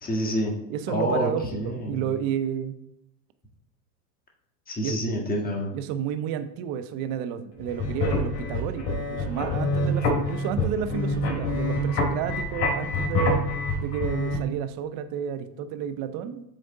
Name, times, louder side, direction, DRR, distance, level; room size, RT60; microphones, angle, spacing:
voice 1, 0.0-0.5 0.9-2.1 4.7-5.7, equal, 20° left, -1 dB, 1.5 m, -28 dB
voice 2, 0.7-2.8 4.8-5.0 5.7-13.5 13.8-16.4, right 9 dB, 45° right, 10 dB, 0.7 m, -31 dB
sound 1, 7.6-14.4, left 2 dB, 45° left, 2.0 m, -26 dB
7.7 x 3.4 x 3.8 m, 0.84 s
hypercardioid pair, 95°, 49 cm